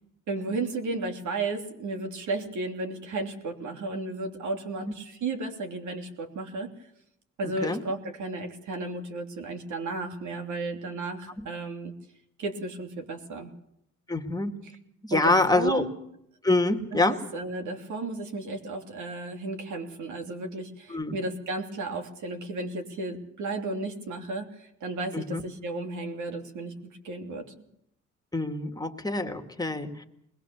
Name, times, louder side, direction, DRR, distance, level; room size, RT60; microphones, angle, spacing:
voice 1, 0.3-6.7 7.4-11.9 12.4-13.5 15.1-16.0 16.9-27.5, right 2 dB, 75° right, 4 dB, 3.2 m, -34 dB
voice 2, 14.1-14.6 15.0-15.9 16.4-17.2 20.9-21.2 25.1-25.4 28.3-30.0, left 2 dB, 15° left, 5 dB, 2.0 m, -26 dB
21.0 x 20.5 x 7.1 m, 0.77 s
cardioid pair, 90°, 30 cm